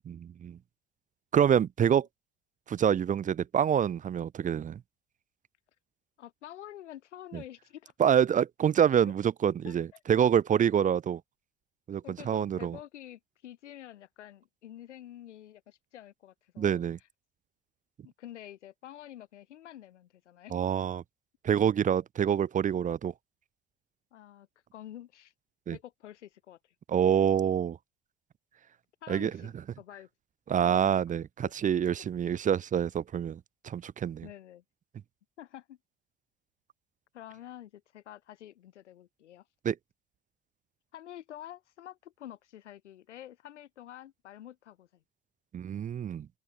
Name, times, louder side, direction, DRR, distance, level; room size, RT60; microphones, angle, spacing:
voice 1, 0.1-0.6 1.3-2.1 2.7-4.8 7.3-7.4 8.0-11.2 11.9-12.8 16.6-17.0 20.5-21.0 21.4-23.1 25.7-25.8 26.9-27.8 29.1-29.3 30.5-34.3 39.6-39.8 45.5-46.3, right 8 dB, 20° right, 0.5 m, -26 dB
voice 2, 6.2-7.9 9.0-9.1 9.4-10.0 12.0-16.8 18.0-20.6 24.1-25.3 25.7-26.6 29.0-30.1 30.7-31.0 31.4-31.5 34.2-34.6 35.4-35.8 37.1-39.4 40.9-45.0, left 12 dB, 75° left, 5.3 m, -48 dB
open air
figure-of-eight pair, 60°, 36 cm